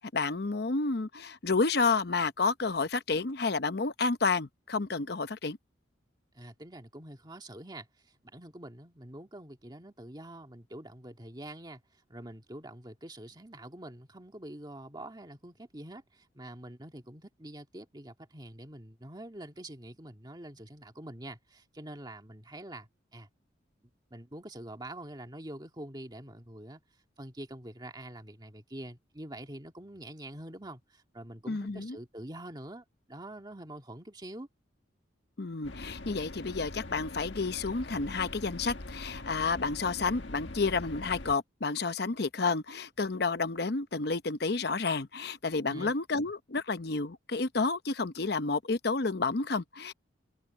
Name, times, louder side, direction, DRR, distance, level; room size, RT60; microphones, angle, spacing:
voice 1, 0.0-5.6 31.5-32.0 35.4-49.9, left 4 dB, 55° left, 0.8 m, -30 dB
voice 2, 6.3-23.3 24.1-26.8 27.2-34.5 45.7-46.0, right 1 dB, 20° right, 2.0 m, -45 dB
sound 1, 35.6-41.4, left 2 dB, 75° left, 1.5 m, -43 dB
head